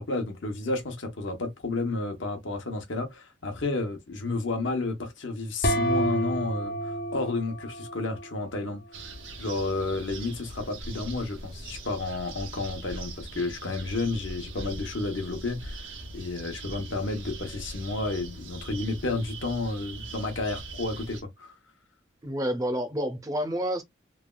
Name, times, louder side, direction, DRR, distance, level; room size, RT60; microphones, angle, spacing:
voice 1, 0.0-8.8 9.4-15.9 16.1-21.5, left 3 dB, 75° left, 0.9 m, -31 dB
sound 1, 5.6-8.4, right 1 dB, 50° left, 0.6 m, -29 dB
sound 2, 8.9-21.2, right 2 dB, 75° right, 0.8 m, -41 dB
voice 2, 22.2-23.8, equal, 20° right, 0.5 m, -29 dB
3.2 x 2.3 x 2.2 m
head